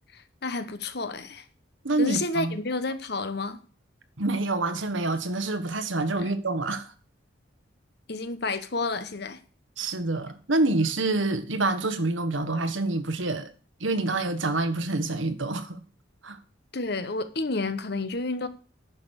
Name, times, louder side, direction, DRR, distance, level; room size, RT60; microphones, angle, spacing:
voice 1, 0.1-1.4 2.0-3.6 6.2-6.3 8.1-9.4 16.7-18.5, left 3 dB, 55° left, 1.1 m, -30 dB
voice 2, 1.8-2.5 4.2-6.9 9.8-13.5 13.8-15.8 16.2-16.4, right 2 dB, 75° right, 1.4 m, -27 dB
10.5 x 6.3 x 6.5 m
head